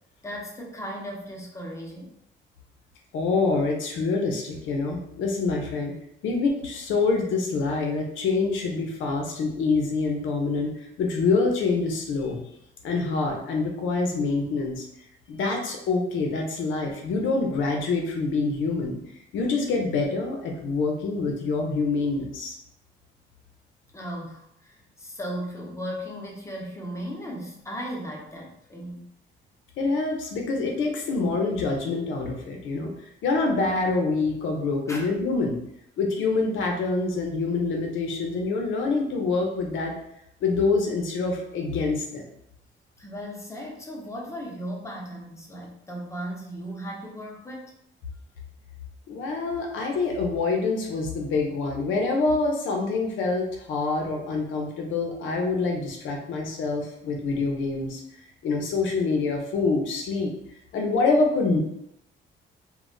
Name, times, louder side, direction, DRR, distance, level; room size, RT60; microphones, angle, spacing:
voice 1, 0.2-2.1 23.9-29.1 34.9-35.1 43.0-47.7, equal, 15° left, -2 dB, 0.8 m, -36 dB
voice 2, 3.1-5.9 6.2-10.7 11.0-12.4 12.8-14.9 15.3-19.0 19.3-22.5 29.8-32.9 33.2-35.6 36.0-39.9 40.4-42.3 49.1-58.0 58.4-60.3 60.7-61.6, left 3 dB, 80° left, 1 dB, 0.7 m, -26 dB
2.2 x 2.1 x 3.8 m, 0.76 s
cardioid pair, 90°, 20 cm